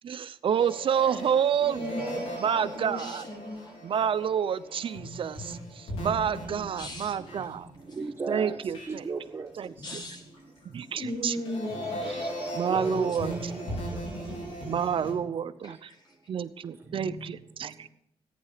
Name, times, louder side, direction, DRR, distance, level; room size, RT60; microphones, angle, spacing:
voice 1, 0.0-1.9 2.4-3.3 3.8-7.7 8.3-9.0 9.6-10.0 10.6-11.4 12.5-13.7 14.7-15.9 16.3-17.9, right 8 dB, 65° right, 12 dB, 0.7 m, -29 dB
sound 1, 0.6-8.3 8.7-9.2 9.6-15.1, equal, 90° left, 4.5 m, -38 dB
voice 2, 1.0-1.3 1.6-3.8 6.8-7.2 7.9-8.0 9.8-10.2 10.9-12.1 14.2-14.4 15.6-16.1, equal, 50° left, -1 dB, 4.7 m, -38 dB
voice 3, 8.0-8.6 8.9-9.5 11.7-11.9 12.7-13.6 16.9-17.3, right 4 dB, 20° right, -8 dB, 2.9 m, -36 dB
14.5 x 9.6 x 5.0 m, 0.79 s
cardioid pair, 85°, 10 cm